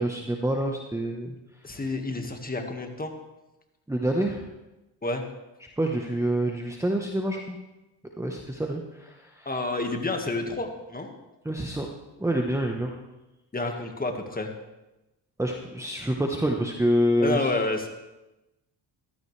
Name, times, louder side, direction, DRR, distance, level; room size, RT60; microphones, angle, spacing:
voice 1, 0.0-1.3 3.9-4.4 5.8-7.6 8.2-9.6 11.4-11.9 12.2-13.0 15.4-17.5, right 1 dB, 5° right, 1 dB, 1.2 m, -27 dB
voice 2, 1.6-3.1 5.0-5.2 9.5-11.1 13.5-14.5 17.2-17.9, left 2 dB, 20° left, 4 dB, 1.8 m, -29 dB
14.5 x 13.0 x 3.4 m, 1.0 s
cardioid pair, 80°, 44 cm